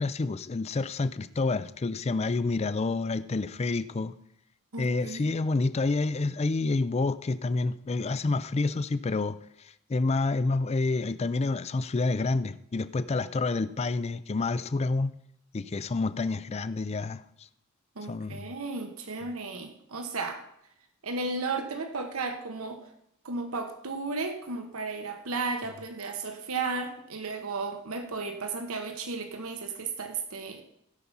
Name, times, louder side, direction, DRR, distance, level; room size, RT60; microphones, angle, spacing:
voice 1, 0.0-4.1 4.8-9.4 9.9-15.1 15.5-17.2 18.1-18.4, left 3 dB, 30° left, 0.4 m, -28 dB
voice 2, 4.7-5.3 18.0-20.4 21.0-22.8 23.2-30.6, right 3 dB, 75° right, 1.1 m, -34 dB
16.5 x 5.5 x 5.9 m
head